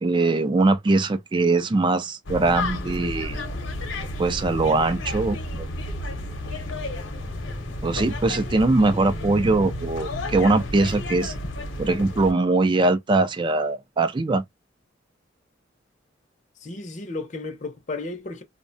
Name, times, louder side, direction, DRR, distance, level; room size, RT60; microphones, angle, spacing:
voice 1, 0.0-3.4 4.2-5.7 7.8-11.3 11.8-14.4, right 2 dB, 25° right, 0.4 m, -21 dB
sound 1, 2.3-12.3, left 1 dB, 85° left, 0.8 m, -31 dB
voice 2, 16.6-18.4, left 3 dB, 40° left, 0.6 m, -33 dB
2.7 x 2.1 x 2.6 m
head